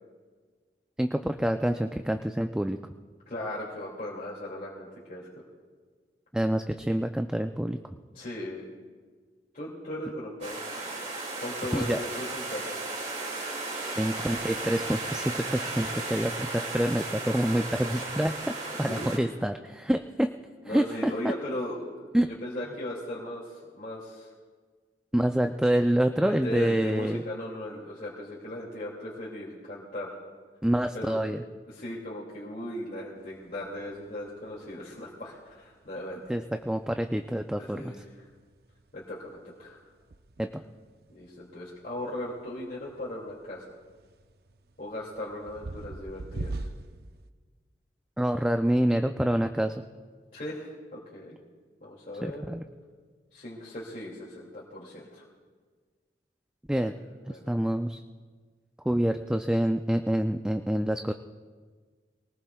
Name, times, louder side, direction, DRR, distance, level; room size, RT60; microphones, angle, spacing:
voice 1, 1.0-2.8 6.3-7.8 11.7-12.0 13.9-20.3 20.7-21.1 22.1-22.3 25.1-27.2 30.6-31.4 36.3-37.9 40.4-40.5 48.2-49.8 52.2-52.6 56.7-56.9 57.3-58.0 58.9-61.1, equal, 5° right, 6 dB, 0.3 m, -27 dB
voice 2, 3.3-5.3 8.1-8.7 9.5-10.7 11.4-12.7 18.8-19.3 20.6-24.3 26.2-30.2 30.9-31.2 31.7-36.2 37.6-38.3 38.9-39.8 41.1-43.8 44.8-46.7 50.3-51.4 51.8-52.4 53.3-55.3 56.8-56.9 57.3-57.6, left 1 dB, 50° left, -6 dB, 2.4 m, -38 dB
sound 1, 10.4-19.2, right 2 dB, 40° right, 2.4 m, -35 dB
sound 2, 33.2-47.3, right 2 dB, 60° right, 0.6 m, -45 dB
23.5 x 19.0 x 2.3 m, 1.5 s
head